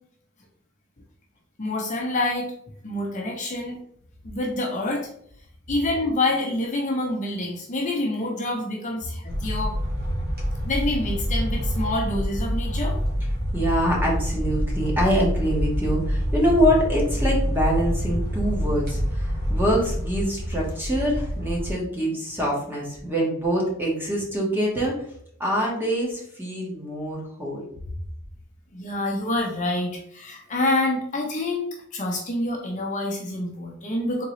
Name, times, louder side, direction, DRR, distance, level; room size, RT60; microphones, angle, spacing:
voice 1, 1.6-2.5 2.8-3.8 4.2-5.1 5.7-9.7 10.6-13.0 28.7-31.7 31.9-34.2, left 2 dB, 40° left, -1 dB, 0.8 m, -27 dB
sound 1, 9.2-21.7, equal, 50° right, 1.4 m, -26 dB
voice 2, 13.5-24.9 25.4-27.6, equal, 10° right, -3 dB, 1.2 m, -25 dB
3.8 x 3.7 x 3.1 m, 0.67 s
head